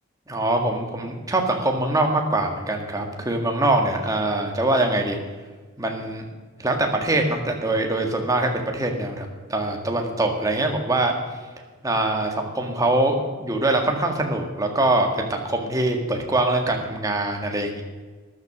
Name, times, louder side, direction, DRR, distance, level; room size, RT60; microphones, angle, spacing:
voice 1, 0.3-5.2 5.8-6.2 6.6-11.1 11.8-17.8, right 2 dB, 15° right, 2 dB, 1.8 m, -23 dB
13.5 x 11.0 x 6.1 m, 1.4 s
head